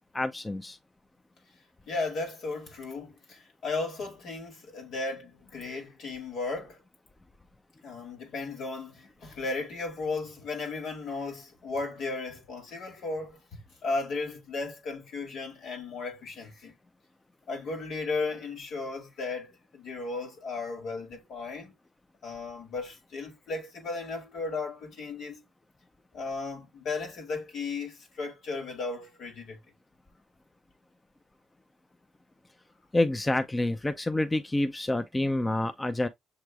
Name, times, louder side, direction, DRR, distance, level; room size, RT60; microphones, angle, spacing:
voice 1, 0.1-0.8 32.9-36.1, left 1 dB, 20° left, 0.5 m, -28 dB
voice 2, 1.9-6.8 7.8-16.8 17.5-21.7 22.2-25.4 26.1-29.6, left 3 dB, 70° left, 2.2 m, -35 dB
6.8 x 3.1 x 2.3 m
cardioid pair, 75°, 0 cm